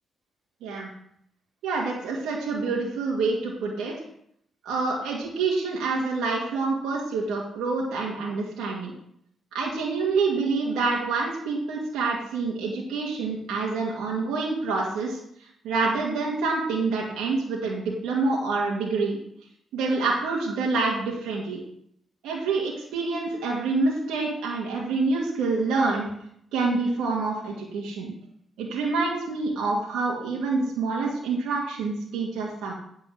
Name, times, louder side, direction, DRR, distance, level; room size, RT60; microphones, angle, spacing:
voice 1, 1.6-3.9 4.7-8.9 9.5-19.2 19.7-21.6 22.2-26.1 26.5-28.1 28.6-32.7, right 3 dB, 80° right, -3 dB, 2.0 m, -27 dB
9.2 x 4.5 x 7.6 m, 0.70 s
supercardioid pair, 55°, 0 cm